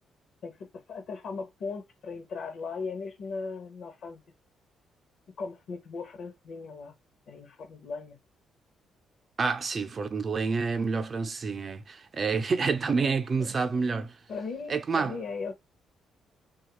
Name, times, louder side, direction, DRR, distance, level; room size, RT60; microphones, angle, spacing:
voice 1, 0.4-4.2 5.4-6.9 7.3-8.2 12.9-13.1 13.4-13.7 14.3-15.5, left 4 dB, 65° left, 0.7 m, -38 dB
voice 2, 9.4-14.1 14.7-15.2, right 4 dB, 40° right, 0.6 m, -28 dB
3.1 x 2.3 x 2.9 m
cardioid pair, 90°, 0 cm